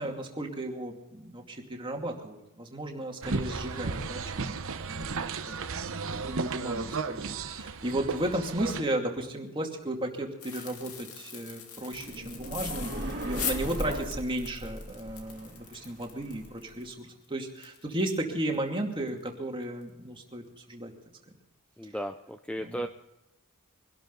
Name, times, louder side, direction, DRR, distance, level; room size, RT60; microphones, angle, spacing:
voice 1, 0.0-5.1 5.5-5.6 6.1-20.9 22.6-22.8, right 1 dB, 25° right, 1 dB, 2.5 m, -34 dB
sound 1, 3.2-8.8, right 4 dB, 65° right, 0.9 m, -34 dB
sound 2, 10.4-18.2 18.5-18.6 19.1-19.3 19.6-19.8, left 7 dB, 70° left, 2.3 m, -41 dB
sound 3, 11.9-16.9, right 1 dB, 50° right, 2.3 m, -38 dB
voice 2, 21.8-22.9, equal, 5° left, 7 dB, 0.5 m, -35 dB
24.0 x 12.0 x 4.0 m, 0.92 s
head